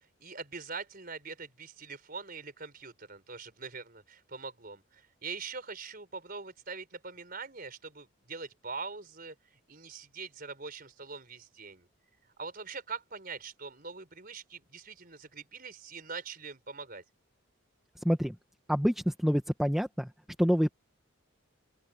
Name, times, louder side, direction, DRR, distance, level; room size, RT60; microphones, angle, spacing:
voice 1, 0.2-11.9 12.4-17.0, right 4 dB, 40° right, 4.9 m, -43 dB
voice 2, 18.0-18.4 18.7-20.1 20.4-20.7, equal, ahead, 1.1 m, -27 dB
open air
head